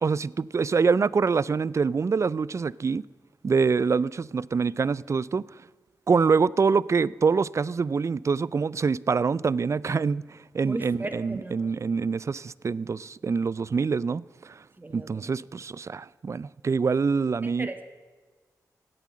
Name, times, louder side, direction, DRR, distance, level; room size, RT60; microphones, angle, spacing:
voice 1, 0.0-3.0 3.4-5.4 6.1-14.6 14.9-17.7, right 5 dB, 45° right, 0.4 m, -25 dB
voice 2, 10.6-11.7 14.8-15.2 17.6-17.8, right 2 dB, 25° right, 1.8 m, -37 dB
16.0 x 9.1 x 7.4 m
cardioid pair, 50°, 7 cm